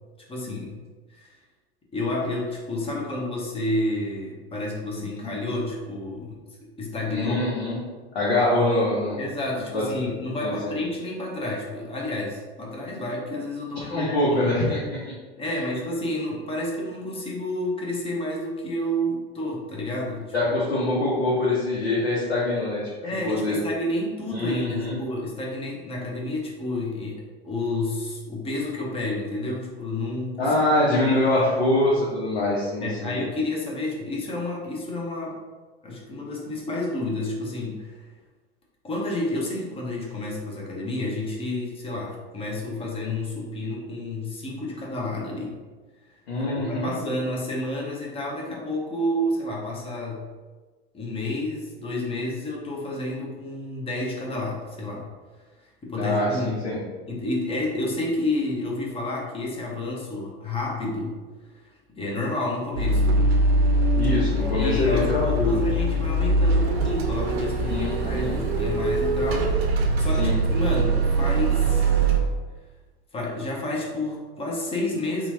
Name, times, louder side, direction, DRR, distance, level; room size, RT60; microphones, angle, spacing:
voice 1, 0.3-0.8 1.1-1.4 1.9-7.4 9.2-14.5 15.4-20.3 23.0-31.5 32.8-35.3 35.8-38.0 38.8-45.6 46.3-50.2 50.9-55.1 55.8-56.6 57.1-61.2 61.5-61.7 62.0-63.4 64.4-69.5 70.0-72.2 73.1-75.3, left 1 dB, 20° left, -2 dB, 0.7 m, -30 dB
voice 2, 7.0-7.8 8.1-9.2 9.7-10.1 10.4-10.8 13.9-15.0 15.4-15.6 20.3-22.8 23.2-23.6 24.3-25.0 30.4-33.2 46.3-46.9 56.0-56.8 64.0-65.6 67.7-68.4 70.2-70.4, left 1 dB, 75° left, -7 dB, 0.9 m, -24 dB
sound 1, 62.8-72.2, right 2 dB, 75° right, 0.6 m, -22 dB
2.9 x 2.4 x 2.7 m, 1.3 s
hypercardioid pair, 90°, 31 cm